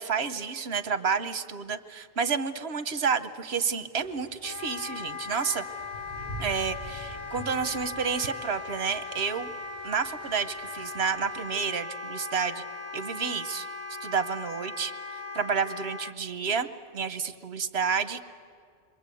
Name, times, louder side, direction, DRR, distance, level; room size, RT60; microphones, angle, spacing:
voice 1, 0.0-5.6 6.4-9.5 9.8-12.6 12.9-13.7 14.0-14.9 15.3-18.2, right 6 dB, 80° right, 10 dB, 1.3 m, -30 dB
sound 1, 3.9-11.6, right 1 dB, 25° left, 4.6 m, -46 dB
Wind instrument woodwind instrument, 4.4-16.1, left 3 dB, 40° left, 1.2 m, -39 dB
27.5 x 23.5 x 8.5 m, 2.2 s
omnidirectional pair, 1.0 m